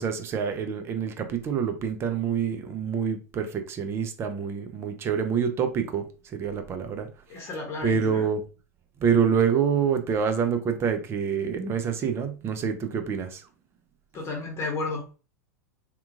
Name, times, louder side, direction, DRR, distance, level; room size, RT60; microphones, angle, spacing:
voice 1, 0.0-7.1 7.8-8.4 9.0-13.5, right 7 dB, 30° right, 0.5 m, -26 dB
voice 2, 7.3-8.3 14.1-15.1, left 3 dB, 30° left, 0.9 m, -32 dB
2.9 x 2.3 x 2.5 m
hypercardioid pair, 95°, 9 cm